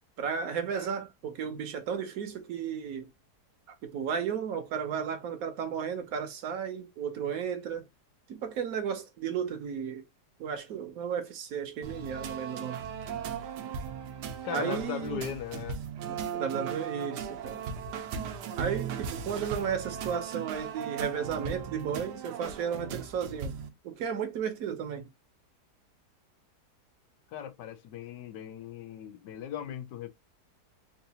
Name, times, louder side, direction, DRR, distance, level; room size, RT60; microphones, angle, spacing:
voice 1, 0.2-3.1 3.8-7.8 8.3-10.1 10.4-12.8 14.5-15.2 16.1-17.7 18.6-23.6 23.8-25.1, right 7 dB, 70° right, 1.0 m, -34 dB
sound 1, 11.8-23.7, right 7 dB, 85° right, 1.2 m, -37 dB
voice 2, 14.4-15.8 27.3-30.1, left 9 dB, 90° left, 1.3 m, -38 dB
3.8 x 2.4 x 2.7 m
omnidirectional pair, 1.8 m